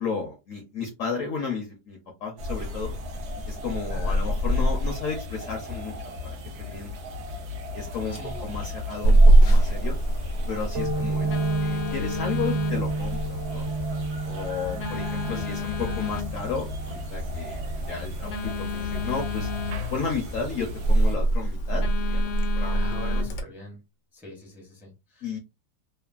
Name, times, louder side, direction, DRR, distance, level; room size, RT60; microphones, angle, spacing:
voice 1, 0.0-3.0 3.5-6.9 7.7-9.9 10.5-13.7 14.3-19.5 19.9-23.2 25.2-25.4, left 5 dB, 65° left, 2 dB, 0.8 m, -33 dB
sound 1, 2.4-21.2, left 2 dB, 80° right, 0.6 m, -33 dB
voice 2, 8.1-8.5 10.8-11.1 15.3-15.7 22.7-23.8 24.1-25.4, equal, 5° right, -1 dB, 0.3 m, -43 dB
Telephone, 9.0-23.4, right 1 dB, 90° left, 1.3 m, -24 dB
sound 2, 10.8-18.1, right 3 dB, 55° right, 0.9 m, -31 dB
3.2 x 2.1 x 2.3 m, 0.25 s
omnidirectional pair, 1.9 m